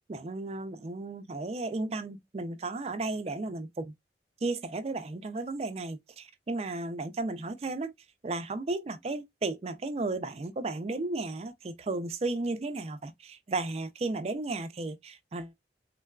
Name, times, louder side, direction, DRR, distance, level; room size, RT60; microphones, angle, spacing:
voice 1, 0.1-3.9 4.4-7.9 8.2-15.5, right 2 dB, 35° right, 0.4 m, -34 dB
3.7 x 2.2 x 2.3 m
head